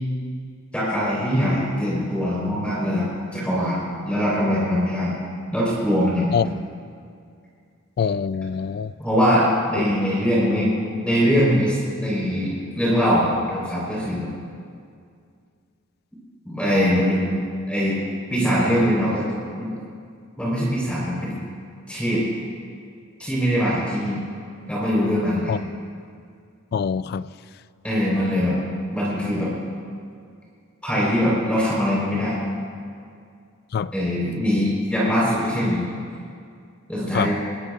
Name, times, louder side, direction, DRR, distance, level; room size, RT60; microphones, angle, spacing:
voice 1, 0.7-5.1 5.5-6.4 9.0-14.3 16.4-17.3 17.7-18.0 18.3-19.3 19.6-19.7 20.4-21.4 21.9-22.2 23.2-24.2 24.7-25.6 27.8-28.5 28.9-29.5 30.8-32.4 33.9-35.9 36.9-37.4, equal, 5° left, 3.9 m, -22 dB
voice 2, 8.0-8.9 25.5-25.6 26.7-27.3 33.7-33.9 37.1-37.3, left 6 dB, 50° left, 0.3 m, -24 dB
21.0 x 21.0 x 2.4 m
head